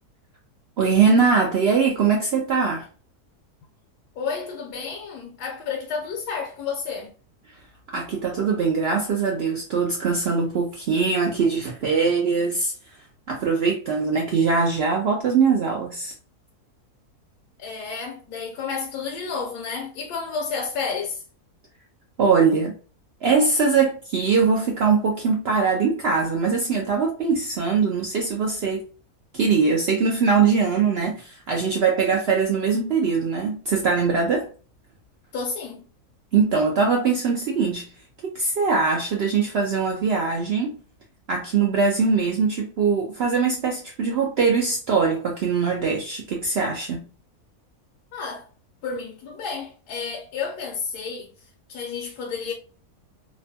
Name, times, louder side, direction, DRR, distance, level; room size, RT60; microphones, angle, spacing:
voice 1, 0.8-2.9 7.9-12.7 13.3-16.1 22.2-22.8 23.2-28.8 29.3-34.5 36.3-37.9 38.2-40.8 41.3-47.1, right 5 dB, 80° right, 0.5 m, -22 dB
voice 2, 4.2-7.1 17.6-21.2 35.3-35.8 48.1-48.5 48.8-51.3 51.7-52.5, left 5 dB, 80° left, 1.1 m, -31 dB
2.9 x 2.2 x 2.7 m
omnidirectional pair, 1.7 m